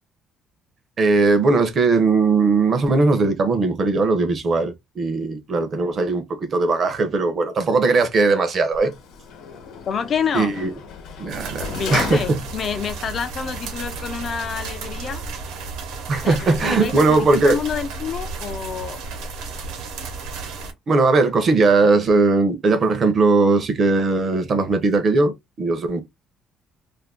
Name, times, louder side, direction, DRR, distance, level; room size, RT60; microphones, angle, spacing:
voice 1, 1.0-8.9 10.3-10.7 11.2-12.4 16.1-17.6 20.9-26.0, right 3 dB, 30° right, 0.7 m, -19 dB
Sliding door, 8.7-12.8 13.3-13.4, left 5 dB, 65° left, 1.0 m, -34 dB
voice 2, 9.9-10.5 11.7-15.2 16.2-19.0, left 7 dB, 35° left, 0.4 m, -28 dB
sound 1, 11.3-20.7, right 4 dB, 90° right, 1.1 m, -33 dB
2.6 x 2.6 x 3.5 m
cardioid pair, 170°, 0 cm